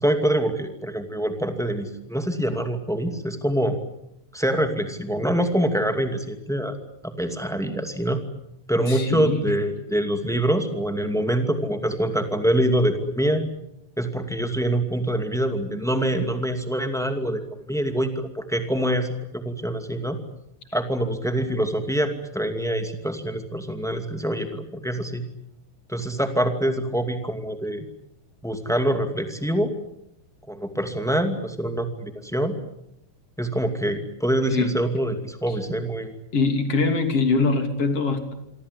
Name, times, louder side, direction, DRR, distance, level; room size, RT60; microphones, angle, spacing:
voice 1, 0.0-3.7 4.3-6.7 7.0-8.2 8.7-13.4 14.0-17.4 17.7-19.1 19.3-20.2 20.7-25.2 25.9-27.8 28.4-29.7 30.5-32.5 33.4-36.1, right 1 dB, ahead, 6 dB, 0.8 m, -25 dB
voice 2, 8.9-9.6 34.5-34.8 36.3-38.3, left 3 dB, 35° left, 7 dB, 3.4 m, -23 dB
27.5 x 24.0 x 8.3 m, 0.80 s
omnidirectional pair, 5.0 m